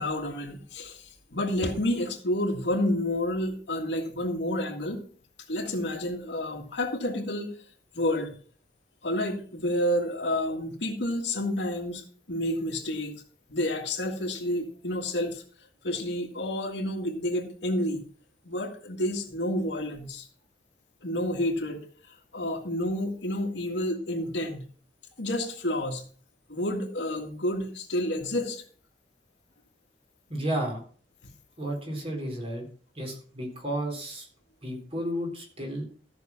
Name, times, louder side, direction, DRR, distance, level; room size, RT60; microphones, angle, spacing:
voice 1, 0.0-5.1 5.5-7.5 7.9-8.3 9.0-13.2 13.5-15.4 15.8-18.0 18.4-20.3 21.0-21.8 22.1-24.7 25.2-26.1 26.5-28.6, left 1 dB, 90° left, 0 dB, 2.0 m, -29 dB
voice 2, 30.3-30.8 31.6-32.7 33.0-34.3 34.6-35.8, right 1 dB, 35° right, 1 dB, 3.9 m, -32 dB
14.0 x 6.2 x 5.9 m, 0.43 s
head